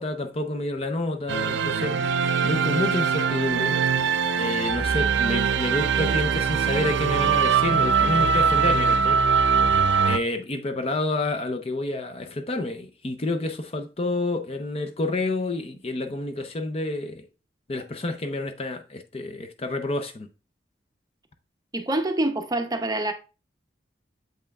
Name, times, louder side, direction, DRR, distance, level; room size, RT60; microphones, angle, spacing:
voice 1, 0.0-2.0 2.4-3.8 4.4-9.2 10.1-17.2 17.7-20.3, left 2 dB, 35° left, 0.6 m, -29 dB
sound 1, 1.3-10.2, right 6 dB, 75° right, 0.5 m, -22 dB
voice 2, 21.7-23.1, right 1 dB, 20° right, 0.6 m, -26 dB
7.7 x 5.4 x 2.3 m
head